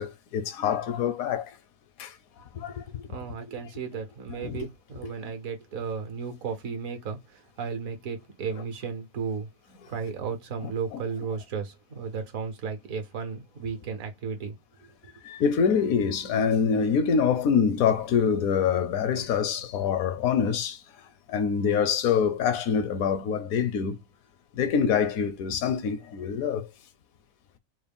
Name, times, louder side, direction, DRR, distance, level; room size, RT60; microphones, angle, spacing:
voice 1, 0.0-1.6 2.0-2.2 2.5-3.0 4.4-4.7 10.6-11.0 15.2-20.8 21.3-24.0 24.5-26.7, left 7 dB, 75° left, 1.0 m, -25 dB
voice 2, 3.1-9.5 9.9-14.5 15.0-15.1, right 5 dB, 75° right, 1.3 m, -34 dB
4.1 x 2.2 x 3.5 m
omnidirectional pair, 1.5 m